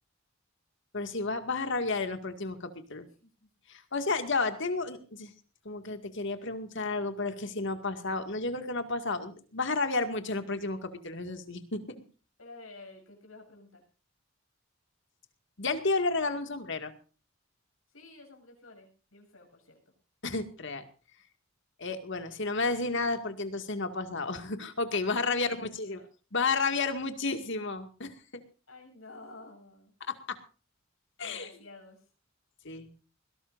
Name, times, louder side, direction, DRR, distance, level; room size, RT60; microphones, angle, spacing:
voice 1, 0.9-3.1 3.7-5.3 5.6-11.8 15.6-16.9 20.2-20.8 21.8-26.0 26.3-28.4 30.1-30.2 31.2-31.5 32.6-32.9, left 3 dB, 60° left, 7 dB, 2.2 m, -32 dB
voice 2, 3.0-3.5 12.4-13.8 17.9-19.8 25.3-26.1 28.7-29.9 31.2-32.1, left 2 dB, 80° left, 2 dB, 7.1 m, -51 dB
21.0 x 18.0 x 2.6 m, 0.37 s
head